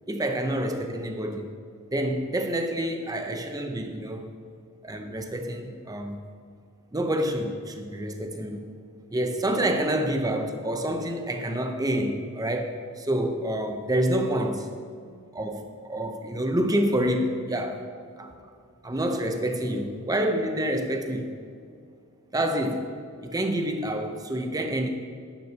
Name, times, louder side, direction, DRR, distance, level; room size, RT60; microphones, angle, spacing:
voice 1, 0.1-1.5 1.9-4.3 4.8-6.2 6.9-8.7 9.1-14.7 15.3-17.8 18.2-18.3 18.8-21.3 22.3-22.9 23.2-24.9, right 1 dB, 15° right, 5 dB, 0.8 m, -28 dB
11.0 x 9.9 x 2.9 m, 2.3 s
head